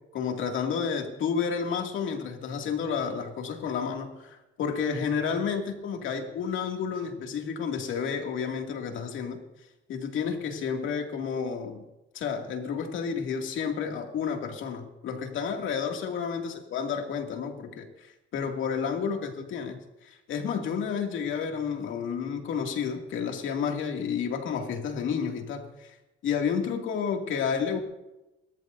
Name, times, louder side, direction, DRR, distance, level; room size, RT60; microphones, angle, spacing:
voice 1, 0.1-9.4 9.9-11.8 12.1-26.0 26.2-27.8, left 6 dB, 80° left, 2 dB, 2.4 m, -31 dB
29.5 x 13.5 x 2.7 m, 0.97 s
cardioid pair, 90°, 20 cm